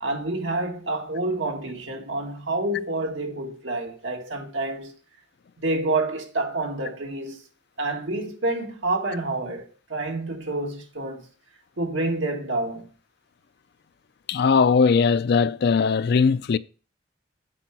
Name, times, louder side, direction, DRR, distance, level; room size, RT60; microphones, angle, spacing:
voice 1, 0.0-4.9 5.6-7.4 7.8-11.3 11.8-12.9, right 2 dB, 90° right, 1.8 m, -28 dB
voice 2, 14.3-16.6, left 5 dB, 60° left, 0.4 m, -19 dB
8.5 x 4.9 x 5.9 m
head